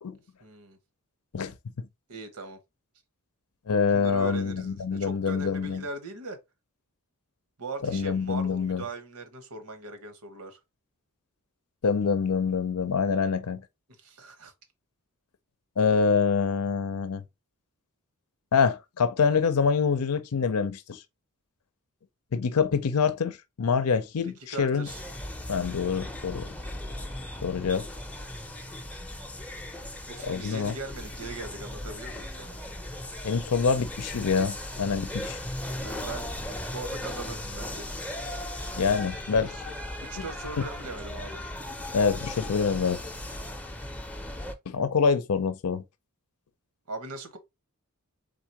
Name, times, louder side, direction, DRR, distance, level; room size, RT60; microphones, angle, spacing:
voice 1, 0.4-0.8 2.1-2.6 3.9-6.4 7.6-10.6 14.0-14.5 24.5-25.0 30.1-32.6 35.8-37.9 40.0-41.4 46.9-47.4, right 3 dB, 80° right, 1.2 m, -40 dB
voice 2, 1.3-1.9 3.7-5.8 7.8-8.8 11.8-13.6 15.8-17.2 18.5-21.0 22.3-24.9 25.5-26.5 27.4-27.9 30.2-30.7 33.2-35.4 38.8-39.6 40.2-40.3 41.9-43.1 44.7-45.8, left 5 dB, 80° left, 0.6 m, -26 dB
sound 1, 24.9-44.5, left 1 dB, 5° left, 0.6 m, -37 dB
4.0 x 3.7 x 2.9 m
head